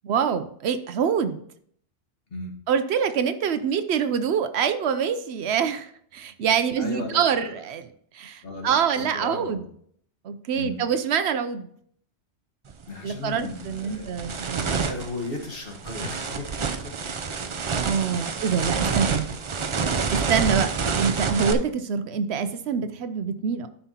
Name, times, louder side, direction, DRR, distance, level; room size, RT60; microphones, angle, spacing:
voice 1, 0.0-1.4 2.7-7.9 8.1-9.6 10.2-11.7 13.0-14.8 17.8-19.3 20.1-20.7 21.0-23.7, right 7 dB, 75° right, 11 dB, 0.9 m, -25 dB
voice 2, 6.8-7.6 8.4-9.7 10.5-10.8 12.9-17.3 18.3-18.7 19.1-19.2, left 2 dB, 55° left, 1 dB, 1.6 m, -37 dB
sound 1, 12.7-12.8 13.3-21.5, right 5 dB, 45° right, 0.4 m, -28 dB
12.5 x 5.7 x 2.8 m, 0.64 s
omnidirectional pair, 1.2 m